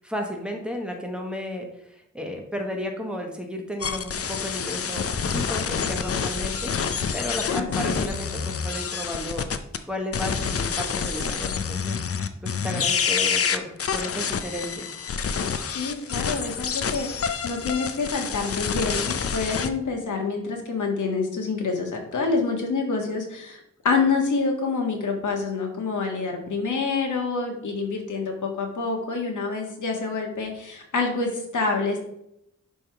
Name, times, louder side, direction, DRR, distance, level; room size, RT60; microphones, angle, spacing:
voice 1, 0.0-6.7 7.1-9.5 9.9-14.9, left 1 dB, 5° right, 1 dB, 1.1 m, -33 dB
sound 1, 3.8-9.8 10.1-19.7, left 6 dB, 50° left, 0.6 m, -27 dB
voice 2, 7.6-8.1 15.7-23.6 23.8-32.0, left 4 dB, 90° left, 2 dB, 1.7 m, -27 dB
11.0 x 3.6 x 4.6 m, 0.78 s
wide cardioid pair, 155°, 29 cm